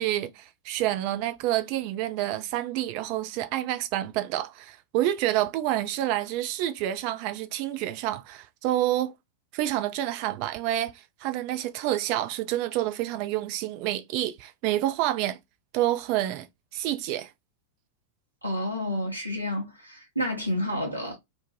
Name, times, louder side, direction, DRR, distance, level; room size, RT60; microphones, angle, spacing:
voice 1, 0.0-9.1 9.5-15.4 15.7-16.5 16.7-17.3, right 13 dB, 45° right, 0.4 m, -28 dB
voice 2, 18.4-21.2, left 1 dB, 90° right, 0.8 m, -30 dB
2.6 x 2.1 x 3.1 m
figure-of-eight pair, 90°, 0 cm